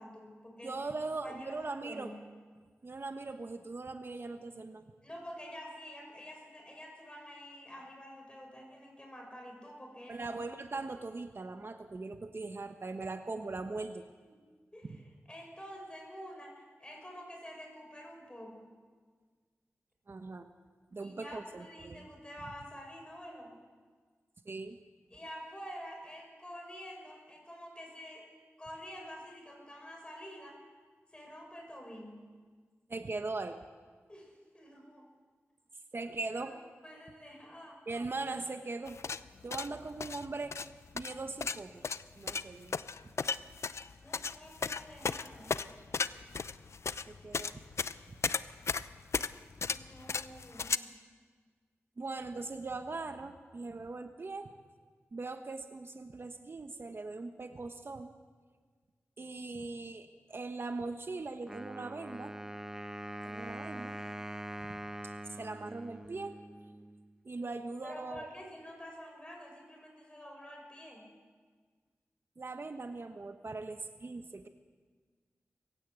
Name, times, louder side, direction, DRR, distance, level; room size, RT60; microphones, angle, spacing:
voice 1, 0.0-0.8 1.1-2.2 5.0-10.3 14.2-14.4 14.7-15.0 15.3-18.7 21.0-23.5 25.1-28.3 28.6-30.6 31.1-32.3 34.1-35.1 36.4-37.8 39.5-39.8 44.0-45.5 49.7-50.9 67.8-71.1, equal, 20° left, 1 dB, 6.8 m, -48 dB
voice 2, 0.6-2.1 2.8-4.8 10.1-14.0 14.8-15.0 20.1-20.5 20.9-22.0 24.4-24.8 32.9-33.6 35.9-36.6 37.9-39.0 39.4-40.6 40.9-41.8 42.2-42.8 47.1-47.6 52.0-54.5 55.1-58.1 59.2-62.3 63.2-63.9 64.7-64.8 65.4-66.3 67.2-68.3 72.4-74.5, right 3 dB, 50° right, 7 dB, 1.2 m, -40 dB
sound 1, 38.9-50.8, left 5 dB, 70° left, 0.6 m, -35 dB
Wind instrument woodwind instrument, 61.5-67.1, right 1 dB, 10° right, 1.1 m, -43 dB
20.5 x 16.0 x 8.3 m, 1.5 s
cardioid pair, 60°, 5 cm